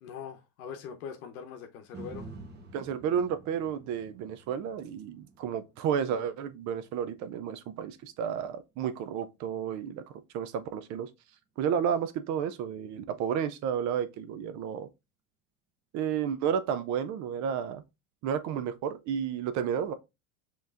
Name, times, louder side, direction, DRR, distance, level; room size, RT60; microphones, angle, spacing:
voice 1, 0.0-2.3, left 7 dB, 80° left, 0.8 m, -42 dB
sound 1, 1.9-10.1 10.6-10.7, right 3 dB, 25° right, 1.0 m, -51 dB
voice 2, 2.7-10.0 10.3-11.1 11.6-14.9 15.9-17.8 18.2-19.9, right 8 dB, 45° right, 0.5 m, -31 dB
5.3 x 3.1 x 2.4 m
supercardioid pair, 120°, 43 cm